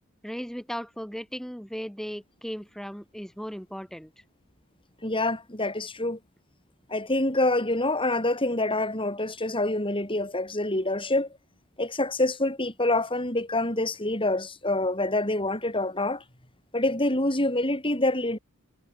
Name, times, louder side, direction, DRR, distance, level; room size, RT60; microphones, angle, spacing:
voice 1, 0.2-4.1, equal, ahead, 7.3 m, -36 dB
voice 2, 5.0-6.2 6.9-11.3 11.8-16.2 16.7-18.4, left 2 dB, 25° left, 7.8 m, -26 dB
head